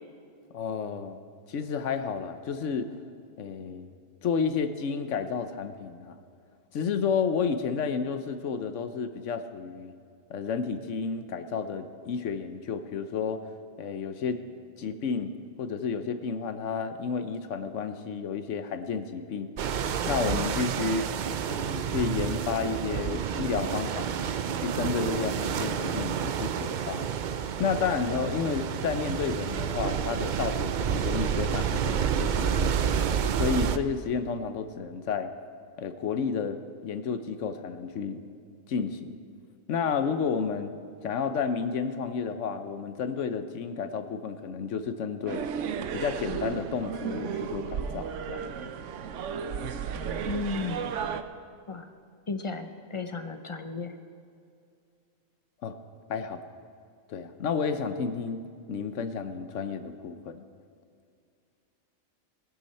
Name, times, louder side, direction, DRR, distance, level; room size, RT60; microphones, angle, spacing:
voice 1, 0.5-1.2 1.5-2.9 3.4-3.9 4.2-6.2 6.7-9.9 10.3-13.4 13.8-14.4 14.8-15.3 15.6-19.5 20.1-21.1 21.5-24.1 24.6-27.1 27.6-32.9 33.4-35.3 35.8-38.2 38.7-39.2 39.7-40.7 41.0-45.5 45.9-48.5 55.6-55.8 56.1-56.5 57.1-58.4 58.7-60.4, left 6 dB, 65° left, 10 dB, 1.1 m, -31 dB
sound 1, 19.6-33.8, right 8 dB, 90° right, 0.4 m, -29 dB
sound 2, 45.3-51.2, right 7 dB, 65° right, 1.0 m, -34 dB
voice 2, 50.2-50.9 51.7-51.9 52.3-53.9, left 3 dB, 35° left, 7 dB, 0.5 m, -34 dB
19.5 x 11.0 x 4.3 m, 2.3 s
omnidirectional pair, 1.4 m